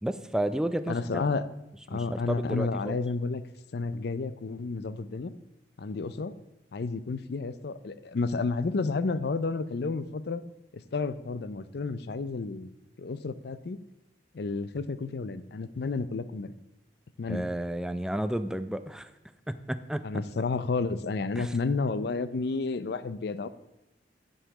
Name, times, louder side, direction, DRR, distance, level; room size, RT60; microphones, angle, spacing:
voice 1, 0.0-1.2 1.9-3.0 17.3-19.1 19.5-20.0 21.4-21.5, right 1 dB, 5° right, 11 dB, 0.4 m, -32 dB
voice 2, 0.9-1.4 1.9-3.4 3.7-5.3 5.8-6.3 6.7-10.4 10.9-12.7 13.0-13.8 14.3-16.5 17.2-17.5 20.0-23.5, left 3 dB, 65° left, 14 dB, 0.5 m, -31 dB
10.0 x 5.5 x 6.0 m, 0.92 s
head